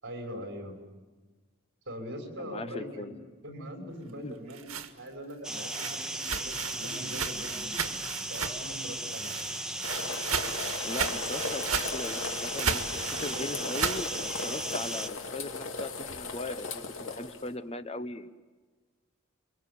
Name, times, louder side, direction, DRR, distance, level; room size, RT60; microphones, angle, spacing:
voice 1, 0.0-0.8 1.9-8.0 8.3-9.3, equal, 55° right, 3 dB, 5.9 m, -42 dB
voice 2, 2.4-3.2 4.2-4.3 10.8-18.3, left 2 dB, 30° left, 11 dB, 0.9 m, -39 dB
sound 1, 4.3-8.8 9.1-14.1, right 7 dB, 90° right, 1.8 m, -35 dB
sound 2, 5.4-15.1, right 1 dB, 5° right, 1.5 m, -36 dB
sound 3, 9.8-17.5, left 4 dB, 65° left, 2.4 m, -37 dB
29.0 x 23.5 x 8.5 m, 1.3 s
head